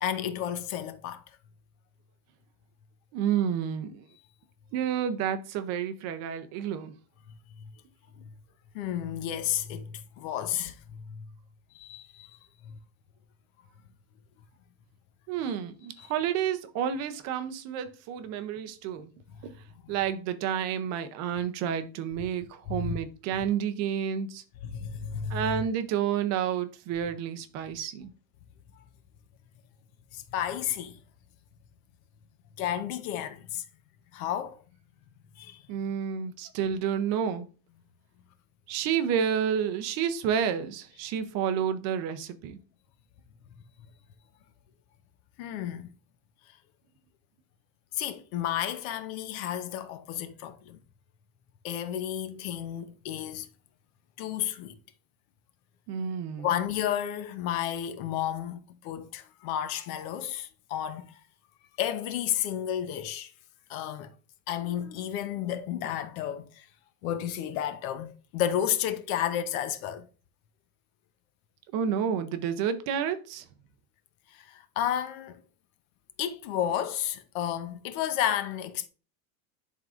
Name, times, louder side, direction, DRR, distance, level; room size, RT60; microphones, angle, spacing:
voice 1, 0.0-1.2 8.2-8.3 8.7-11.3 11.7-12.8 16.0-16.1 19.8-19.9 22.7-23.0 24.6-25.6 30.1-31.0 32.6-33.7 34.1-34.6 35.4-35.6 43.8-43.9 45.4-45.9 47.9-50.8 51.6-53.5 54.2-54.8 56.4-61.2 61.8-63.3 63.7-64.1 64.5-66.7 67.0-70.1 74.3-75.4 76.2-78.9, left 10 dB, 80° left, 0.9 m, -32 dB
voice 2, 3.1-4.0 4.7-6.9 15.3-19.1 19.4-19.5 19.9-24.4 25.3-28.1 35.7-37.5 38.7-42.6 55.9-56.5 71.7-73.5, right 8 dB, 40° right, 0.5 m, -30 dB
11.0 x 3.7 x 2.4 m
cardioid pair, 175°, 41 cm